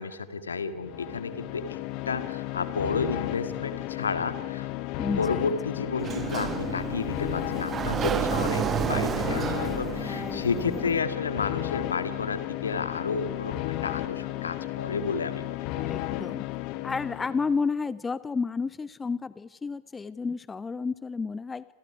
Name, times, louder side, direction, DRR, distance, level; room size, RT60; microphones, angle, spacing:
voice 1, 0.0-1.8 2.1-4.7 5.2-15.8, left 5 dB, 70° left, 11 dB, 1.9 m, -31 dB
sound 1, 0.7-17.6, left 16 dB, 45° left, 1.2 m, -34 dB
voice 2, 5.0-5.5 9.3-9.4 10.1-10.8 15.8-16.4 16.8-21.6, left 4 dB, 15° left, 18 dB, 0.7 m, -31 dB
Sliding door, 6.0-11.0, right 8 dB, 25° right, 1.2 m, -30 dB
29.0 x 27.5 x 4.8 m, 1.3 s
figure-of-eight pair, 90°, 0 cm